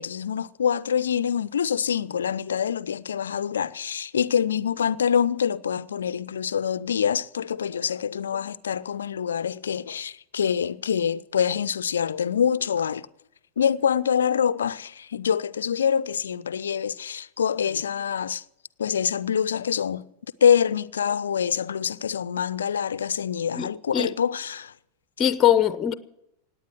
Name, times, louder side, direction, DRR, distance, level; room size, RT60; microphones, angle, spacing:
voice 1, 0.0-13.1 13.6-18.4 18.8-20.1 20.4-24.7, left 8 dB, 65° left, 0.5 m, -25 dB
voice 2, 23.6-24.1 25.2-25.9, left 10 dB, 25° left, 0.7 m, -21 dB
18.0 x 9.4 x 7.6 m
figure-of-eight pair, 90°, 0 cm